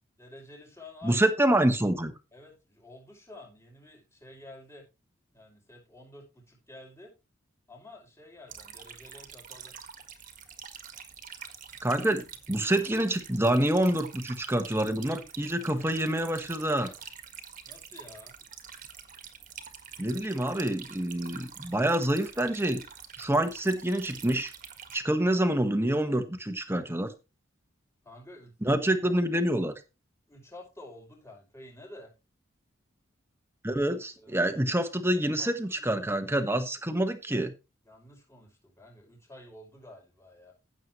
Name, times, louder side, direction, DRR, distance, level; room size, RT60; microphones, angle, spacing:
voice 1, 0.2-1.2 2.3-4.8 5.3-7.1 7.7-9.7 17.7-18.3 28.0-28.8 30.3-32.1 34.2-34.8 35.4-36.5 37.8-40.5, left 1 dB, 15° left, -1 dB, 5.6 m, -50 dB
voice 2, 1.0-2.1 11.8-16.9 20.0-22.8 23.2-24.5 24.9-27.1 28.6-29.7 33.6-37.5, right 1 dB, 10° right, 7 dB, 1.4 m, -27 dB
sound 1, 8.5-25.0, right 7 dB, 40° right, 1.7 m, -46 dB
15.0 x 7.7 x 3.2 m, 0.27 s
head